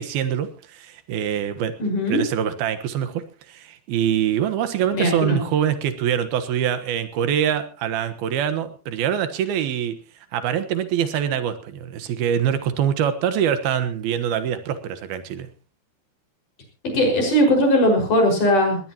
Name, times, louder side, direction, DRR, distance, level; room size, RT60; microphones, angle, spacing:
voice 1, 0.0-1.7 2.1-10.0 10.3-15.5, right 9 dB, 85° right, 10 dB, 3.3 m, -24 dB
voice 2, 1.8-2.2 4.9-5.4 16.9-18.8, equal, 60° left, 2 dB, 7.1 m, -19 dB
20.0 x 18.5 x 3.0 m, 0.33 s
omnidirectional pair, 4.3 m